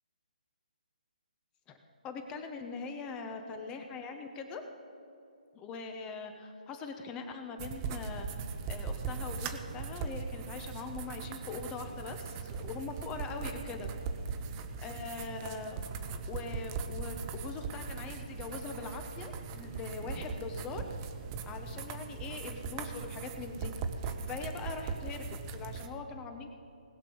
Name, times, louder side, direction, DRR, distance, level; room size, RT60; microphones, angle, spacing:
voice 1, 2.0-4.6 5.5-13.9 14.5-15.8 16.3-20.9 21.4-23.7 24.0-26.5, left 4 dB, 15° left, 5 dB, 0.9 m, -42 dB
sound 1, 7.6-25.9, right 5 dB, 25° right, 0.8 m, -39 dB
19.5 x 6.8 x 5.5 m, 2.8 s
hypercardioid pair, 150°, 5 cm